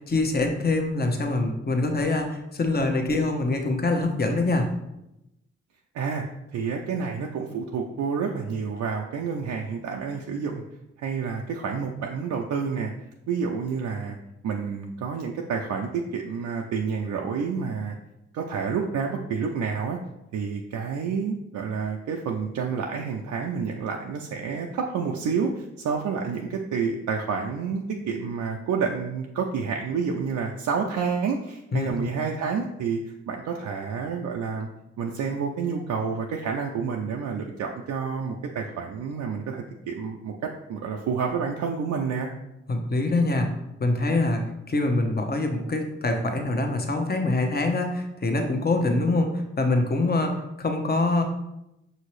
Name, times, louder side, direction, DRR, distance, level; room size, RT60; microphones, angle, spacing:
voice 1, 0.0-4.7 31.7-31.9 42.7-43.5 43.8-51.2, left 2 dB, 35° left, 4 dB, 0.8 m, -24 dB
voice 2, 6.5-10.6 11.0-12.9 13.3-14.2 14.4-18.0 18.3-20.0 20.3-34.7 35.0-42.3, right 5 dB, 75° right, 1 dB, 0.5 m, -29 dB
5.7 x 2.7 x 3.1 m, 0.88 s
supercardioid pair, 40°, 29 cm